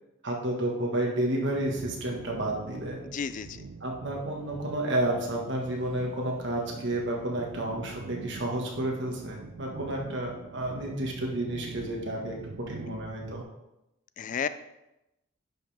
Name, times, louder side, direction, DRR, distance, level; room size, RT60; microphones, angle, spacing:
voice 1, 0.2-3.0 3.8-12.4 12.7-13.4, right 1 dB, 60° right, 0 dB, 1.7 m, -31 dB
sound 1, 1.5-13.4, right 4 dB, 80° right, 0.4 m, -44 dB
voice 2, 3.1-3.6 12.9-13.0 14.2-14.5, left 6 dB, 40° left, 13 dB, 0.3 m, -32 dB
10.5 x 5.4 x 3.5 m, 0.91 s
head